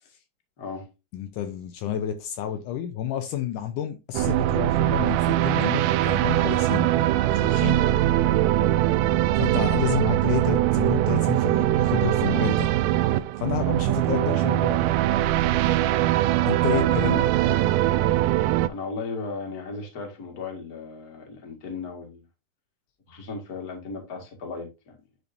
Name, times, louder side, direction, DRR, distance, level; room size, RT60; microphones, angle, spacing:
voice 1, 0.6-0.9 7.7-7.9 8.8-9.1 16.6-17.6 18.7-22.2 23.1-25.0, left 4 dB, 35° left, 1.9 m, -36 dB
voice 2, 1.1-6.9 7.3-7.8 9.4-12.7 13.4-14.9 16.5-17.2, left 11 dB, 75° left, 2.1 m, -30 dB
sound 1, 4.1-18.7, right 14 dB, 85° right, 2.1 m, -22 dB
10.0 x 4.7 x 2.7 m
omnidirectional pair, 3.8 m